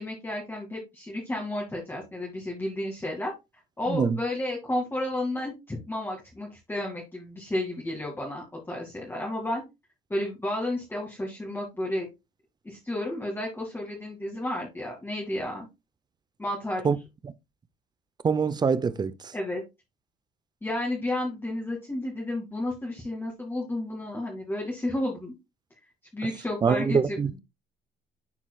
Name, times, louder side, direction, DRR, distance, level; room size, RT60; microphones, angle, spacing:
voice 1, 0.0-3.3 3.8-9.6 10.1-12.1 12.6-15.7 16.4-16.9 19.3-19.6 20.6-25.3 26.1-27.2, left 1 dB, 15° left, 2.1 m, -32 dB
voice 2, 18.2-19.3 26.2-26.3 26.6-27.4, right 5 dB, 25° right, 0.6 m, -24 dB
11.0 x 4.4 x 2.3 m
cardioid pair, 110°, 17 cm